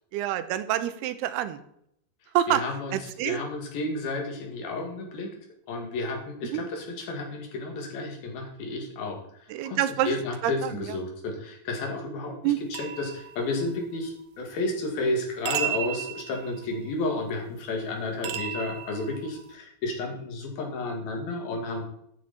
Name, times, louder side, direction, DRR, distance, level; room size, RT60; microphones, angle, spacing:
voice 1, 0.1-1.6 2.3-2.6 2.9-3.4 6.5-6.7 9.5-10.2 10.4-11.0 12.4-12.6, right 12 dB, 90° right, 12 dB, 2.8 m, -27 dB
voice 2, 2.5-5.3 5.7-9.2 9.6-9.8 10.1-21.9, left 2 dB, 70° left, 2 dB, 4.0 m, -32 dB
sound 1, 12.7-14.0 15.5-16.9 18.2-19.5, right 11 dB, 75° right, 2.7 m, -34 dB
13.0 x 9.5 x 4.3 m, 0.72 s
omnidirectional pair, 4.5 m